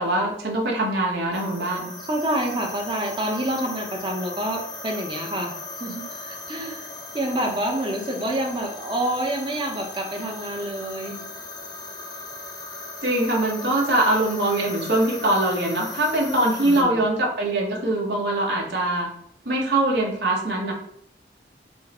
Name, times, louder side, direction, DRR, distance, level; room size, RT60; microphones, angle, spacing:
voice 1, 0.0-1.9 13.0-19.1 19.4-20.7, right 1 dB, 70° right, -1 dB, 1.1 m, -23 dB
sound 1, 1.3-16.8, left 2 dB, 25° left, 0.6 m, -38 dB
voice 2, 2.1-6.9 7.1-11.2 16.6-17.0, right 1 dB, 25° right, 1 dB, 0.8 m, -28 dB
4.6 x 2.2 x 4.2 m, 0.69 s
head